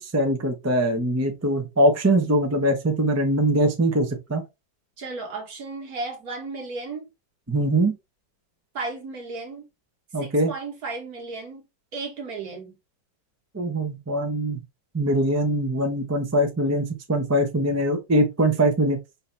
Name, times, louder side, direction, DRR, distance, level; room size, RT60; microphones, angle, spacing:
voice 1, 0.0-4.4 7.5-8.0 10.1-10.5 13.5-14.6 14.9-19.0, right 1 dB, 25° right, 0.3 m, -22 dB
voice 2, 5.0-7.1 8.7-9.7 10.2-11.6 11.9-12.8, right 3 dB, 55° right, 1.8 m, -34 dB
5.6 x 2.9 x 3.3 m
omnidirectional pair, 2.0 m